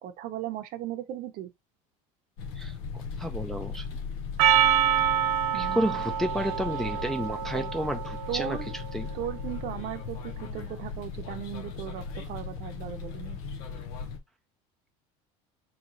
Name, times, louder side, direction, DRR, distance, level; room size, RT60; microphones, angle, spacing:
voice 1, 0.0-1.5 5.5-6.0 7.5-7.7 8.3-8.7 9.1-13.4, right 11 dB, 55° right, 0.7 m, -37 dB
sound 1, 2.4-14.2, left 5 dB, 80° left, 1.0 m, -37 dB
voice 2, 3.2-4.0 5.5-9.1, equal, ahead, 0.4 m, -31 dB
Percussion, 4.4-8.9, right 10 dB, 90° right, 0.5 m, -26 dB
3.1 x 3.0 x 3.8 m
supercardioid pair, 120°, 18 cm